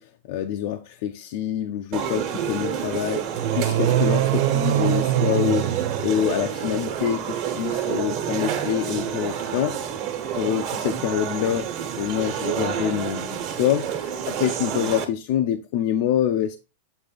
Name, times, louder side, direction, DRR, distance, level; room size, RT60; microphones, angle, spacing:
voice 1, 0.0-9.8 10.3-16.6, left 10 dB, 55° left, 0.5 m, -26 dB
sound 1, 1.9-15.1, right 8 dB, 40° right, 1.4 m, -29 dB
sound 2, 3.3-6.7, right 12 dB, 55° right, 0.6 m, -23 dB
8.0 x 2.8 x 5.1 m
supercardioid pair, 155°, 0 cm